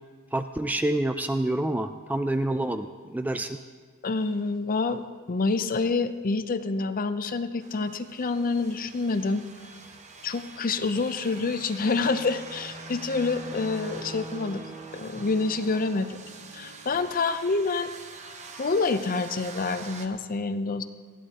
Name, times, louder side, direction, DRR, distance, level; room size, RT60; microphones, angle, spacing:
voice 1, 0.3-3.6, right 1 dB, 5° right, 8 dB, 0.3 m, -27 dB
voice 2, 4.0-5.0 5.3-9.4 10.2-14.6 14.9-16.2 16.5-17.9 18.6-20.8, left 3 dB, 40° left, 10 dB, 0.6 m, -27 dB
sound 1, 7.6-20.1, right 3 dB, 30° right, 0.9 m, -43 dB
19.5 x 13.5 x 2.9 m, 1.5 s
head